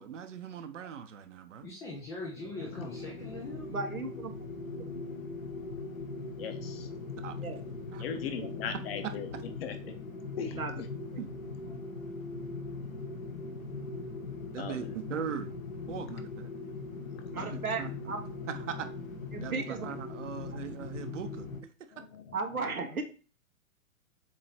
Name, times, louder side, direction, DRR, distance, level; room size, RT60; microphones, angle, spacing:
voice 1, 0.0-1.7 7.2-7.5 7.9-8.0 8.7-9.4 11.2-11.3 14.5-15.5 15.9-16.5 17.3-18.2 18.5-18.9 19.4-21.5, right 8 dB, 60° right, 9 dB, 1.0 m, -40 dB
voice 2, 1.6-3.7, left 2 dB, 5° left, -3 dB, 0.4 m, -41 dB
sound 1, 2.6-21.6, left 3 dB, 70° left, 1.4 m, -40 dB
voice 3, 3.7-4.4 4.8-4.9 7.4-7.6 8.3-8.5 10.4-10.8 17.3-18.2 19.3-19.9 22.3-23.0, right 4 dB, 85° right, 5 dB, 1.3 m, -35 dB
voice 4, 6.4-7.3 8.0-9.3 9.6-10.0 10.3-10.8 14.6-15.0 17.1-17.4 19.4-19.5 21.9-22.4, left 7 dB, 45° left, 7 dB, 1.1 m, -40 dB
7.6 x 3.1 x 4.3 m, 0.38 s
figure-of-eight pair, 115°, 42 cm